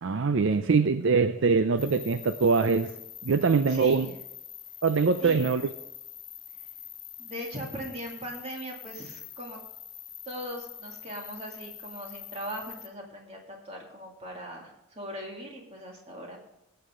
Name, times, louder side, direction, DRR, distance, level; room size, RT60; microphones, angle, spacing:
voice 1, 0.0-2.9 3.2-4.1 4.8-5.7, right 4 dB, 65° right, 10 dB, 0.5 m, -23 dB
sound 1, 1.8-12.9, left 9 dB, 20° left, 0.7 m, -45 dB
voice 2, 3.7-4.0 5.2-5.5 7.2-9.6 10.3-16.4, equal, 30° right, -1 dB, 2.4 m, -40 dB
18.5 x 8.0 x 3.8 m, 0.88 s
head